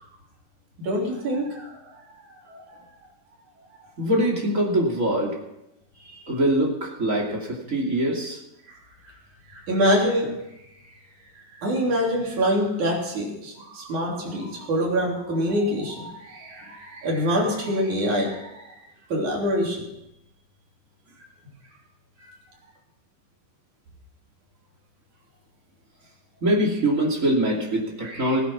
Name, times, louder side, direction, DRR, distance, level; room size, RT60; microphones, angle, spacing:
voice 1, 0.8-1.8 2.5-2.8 9.0-9.1 9.5-10.3 11.6-18.8 19.1-19.9 22.3-22.4 28.0-28.4, equal, 60° right, -2 dB, 4.6 m, -25 dB
voice 2, 4.0-5.4 6.0-8.4 26.4-28.4, right 1 dB, 25° right, -2 dB, 2.7 m, -23 dB
17.0 x 10.0 x 6.1 m, 0.86 s
omnidirectional pair, 3.9 m